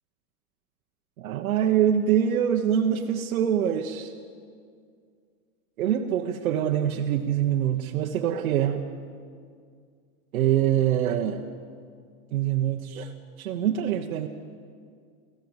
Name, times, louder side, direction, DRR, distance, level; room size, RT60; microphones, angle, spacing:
voice 1, 1.2-4.1 5.8-8.9 10.3-11.4 12.3-13.1 13.4-14.3, right 10 dB, 75° right, 1 dB, 1.4 m, -24 dB
24.5 x 15.0 x 8.1 m, 2.2 s
supercardioid pair, 170°, 43 cm